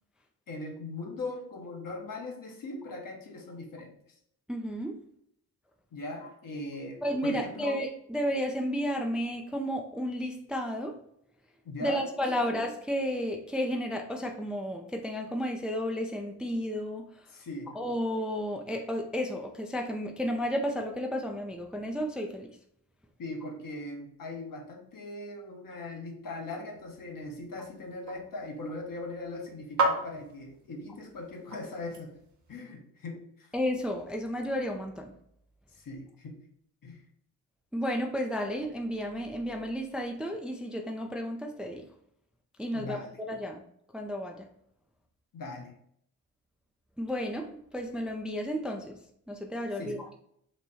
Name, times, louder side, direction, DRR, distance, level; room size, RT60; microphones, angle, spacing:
voice 1, 0.5-4.0 5.9-7.8 11.6-12.5 17.3-17.7 23.2-32.2 32.5-33.5 35.7-36.4 36.8-37.0 42.7-43.2 45.3-45.8 49.7-50.0, left 2 dB, 55° left, 2 dB, 1.0 m, -40 dB
voice 2, 4.5-5.0 7.0-11.0 11.8-17.0 17.8-22.5 33.5-35.1 37.7-41.8 42.6-43.0 43.3-43.6 43.9-44.4 47.0-47.5 47.7-49.0 49.3-50.0, equal, ahead, 2 dB, 0.4 m, -32 dB
sound 1, 26.7-32.6, right 2 dB, 45° right, 1.0 m, -36 dB
3.2 x 2.2 x 4.1 m, 0.70 s
supercardioid pair, 45°, 41 cm